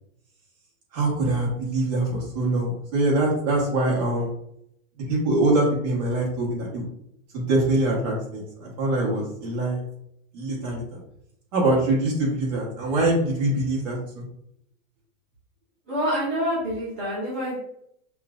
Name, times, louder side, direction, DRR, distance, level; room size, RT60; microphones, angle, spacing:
voice 1, 0.9-4.3 5.0-6.8 7.3-9.8 10.3-11.0 11.5-14.2, right 2 dB, 30° right, -4 dB, 1.2 m, -24 dB
voice 2, 15.9-17.6, equal, 15° right, -13 dB, 0.3 m, -27 dB
5.6 x 2.4 x 2.4 m, 0.75 s
supercardioid pair, 180°, 40 cm